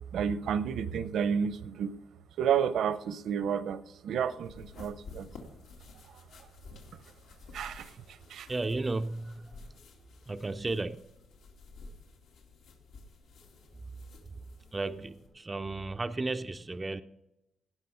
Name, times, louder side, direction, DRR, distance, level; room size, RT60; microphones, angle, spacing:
voice 1, 0.1-1.9 2.4-5.3 7.5-7.9 8.3-8.5, right 7 dB, 70° right, 0.7 m, -31 dB
sound 1, 4.4-15.3, left 3 dB, 85° left, 2.4 m, -52 dB
voice 2, 8.5-9.6 10.3-11.0 14.7-17.0, right 2 dB, 15° right, 0.3 m, -34 dB
18.0 x 6.2 x 5.6 m
cardioid pair, 165°, 0 cm